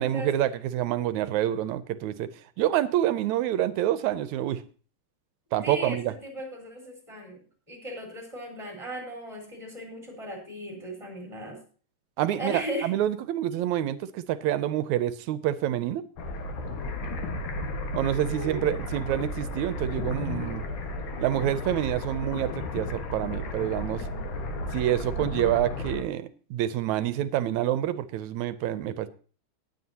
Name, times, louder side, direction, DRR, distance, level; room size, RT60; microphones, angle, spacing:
voice 1, 0.0-2.3 2.6-4.6 5.5-6.1 12.2-16.0 17.9-20.6 21.2-24.1 24.7-29.1, right 12 dB, 75° right, 13 dB, 2.0 m, -27 dB
voice 2, 5.6-7.4 7.7-11.6 12.4-12.9 18.2-18.7, equal, 10° right, 1 dB, 4.5 m, -37 dB
sound 1, 16.2-26.0, left 1 dB, 75° left, 3.0 m, -33 dB
19.0 x 8.1 x 2.8 m, 0.40 s
omnidirectional pair, 3.5 m